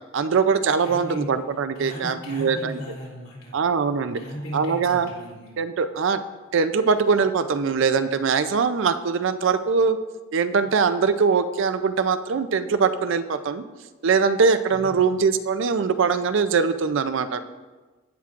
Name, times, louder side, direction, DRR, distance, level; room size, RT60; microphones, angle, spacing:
voice 1, 0.1-2.8 3.5-4.2 4.5-5.1 5.6-6.2 6.5-10.0 10.3-13.6 14.0-17.5, right 5 dB, 60° right, 11 dB, 0.4 m, -22 dB
voice 2, 0.8-1.3 1.7-3.6 4.2-5.5 14.7-15.1, equal, 65° left, -5 dB, 3.1 m, -37 dB
16.5 x 6.0 x 2.5 m, 1.3 s
head